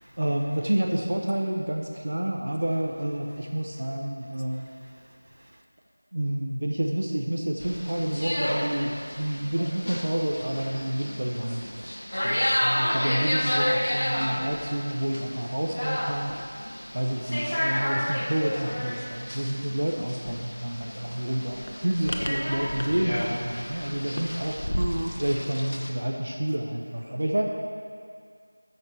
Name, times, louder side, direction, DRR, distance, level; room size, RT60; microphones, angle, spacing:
voice 1, 0.2-4.7 6.1-11.9 12.2-16.4 16.9-24.8 25.2-27.5, right 1 dB, 45° right, 1 dB, 0.6 m, -29 dB
voice 2, 4.5-5.6 23.6-24.2 24.7-25.2 27.1-27.2, right 1 dB, 80° right, 3 dB, 0.9 m, -37 dB
sound 1, 7.6-25.9, equal, 75° left, 1.0 m, -31 dB
6.5 x 5.8 x 6.6 m, 2.2 s
figure-of-eight pair, 180°, 0 cm